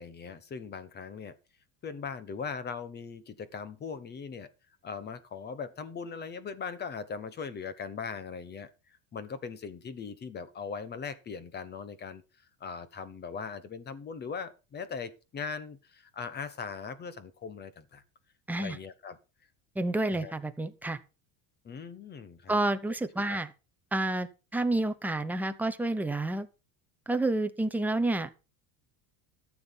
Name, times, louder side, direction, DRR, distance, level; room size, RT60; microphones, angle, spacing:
voice 1, 0.0-1.3 1.8-4.5 4.8-8.7 9.1-12.2 12.6-18.0 18.6-19.2 20.1-20.3 21.6-22.6 23.3-23.4, left 5 dB, 20° left, 15 dB, 1.1 m, -40 dB
voice 2, 19.8-21.0 22.5-23.5 23.9-26.5 27.1-28.3, right 2 dB, 5° right, 8 dB, 0.6 m, -29 dB
14.0 x 7.2 x 5.8 m, 0.32 s
cardioid pair, 165°, 45 cm